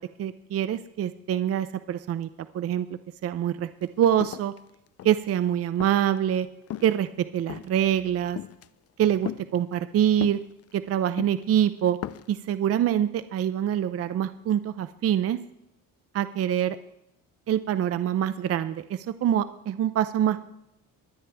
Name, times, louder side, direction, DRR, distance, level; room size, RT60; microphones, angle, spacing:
voice 1, 0.0-2.3 2.5-2.9 3.2-4.5 5.0-6.5 6.8-8.4 9.0-10.4 10.7-12.0 12.3-15.4 16.1-16.8 17.5-20.4, right 10 dB, 45° right, 12 dB, 0.5 m, -25 dB
sound 1, 3.8-3.9 4.2-5.3 5.8-6.2 6.7-7.0 7.5-7.8 8.4-8.7 9.2-9.4 10.2-10.8 11.2-11.4 11.9-12.3, left 11 dB, 45° left, 0.5 m, -36 dB
23.0 x 9.2 x 3.4 m, 0.85 s
cardioid pair, 125°, 34 cm